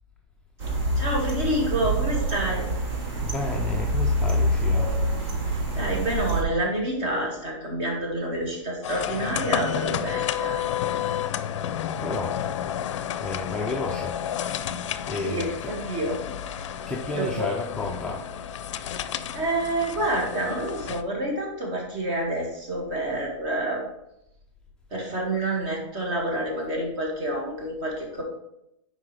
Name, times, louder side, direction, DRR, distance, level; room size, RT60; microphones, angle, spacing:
sound 1, 0.6-6.4, right 1 dB, 55° right, 1.6 m, -26 dB
voice 1, 1.0-2.7 5.4-10.7 15.1-16.2 16.5-16.7 17.1-17.5 19.3-23.8 24.9-28.2, right 1 dB, 35° right, -1 dB, 1.9 m, -28 dB
voice 2, 3.2-5.0 12.0-12.4 12.7-12.9 13.2-15.8 16.9-18.3 19.0-19.3, left 2 dB, 5° left, -2 dB, 0.3 m, -33 dB
sound 2, 8.8-21.0, left 10 dB, 70° left, 0.4 m, -31 dB
5.9 x 4.8 x 3.3 m, 0.81 s
supercardioid pair, 160°, 16 cm